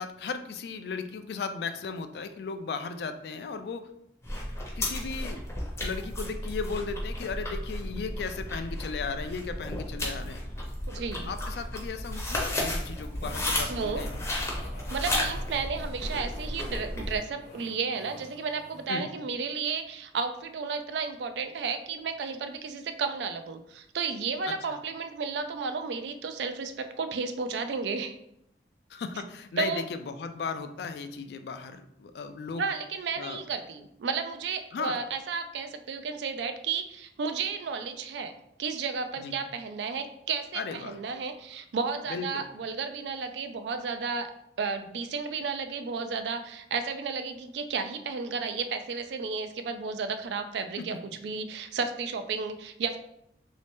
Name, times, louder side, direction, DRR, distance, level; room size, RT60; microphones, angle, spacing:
voice 1, 0.0-3.9 4.8-5.4 5.8-10.4 11.3-14.2 18.9-19.1 24.5-24.6 28.9-32.6 33.2-33.4 34.7-35.0 39.2-39.3 40.5-41.0 42.1-42.5 50.8-51.0, left 5 dB, 70° left, 9 dB, 0.3 m, -36 dB
sound 1, 4.2-17.2, left 1 dB, 15° left, 0.6 m, -33 dB
voice 2, 10.9-11.3 13.7-14.1 14.9-28.1 29.6-29.8 32.5-38.3 38.6-44.3 44.6-51.0 51.2-53.0, right 5 dB, 80° right, 8 dB, 0.4 m, -33 dB
sound 2, 13.2-19.0, left 1 dB, 90° left, 0.9 m, -48 dB
3.1 x 2.7 x 3.4 m, 0.78 s
head